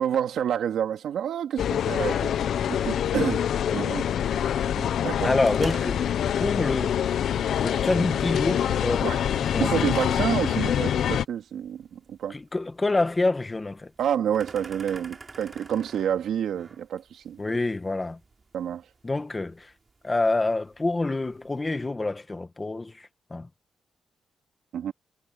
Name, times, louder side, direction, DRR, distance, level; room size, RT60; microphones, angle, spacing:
voice 1, 0.0-3.5 3.7-4.1 4.8-5.3 7.5-7.6 9.0-9.2 9.6-12.4 14.0-17.4 18.5-18.8 24.7-24.9, right 9 dB, 80° right, 2.6 m, -29 dB
sound 1, 1.6-11.3, left 9 dB, 70° left, 0.7 m, -25 dB
voice 2, 5.2-6.0 6.4-7.0 7.6-9.1 9.5-9.9 12.3-13.9 17.4-18.2 19.0-19.7 20.0-23.5, left 2 dB, 15° left, 1.4 m, -27 dB
sound 2, 5.4-21.9, right 4 dB, 25° right, 4.4 m, -49 dB
wide cardioid pair, 155°, 0 cm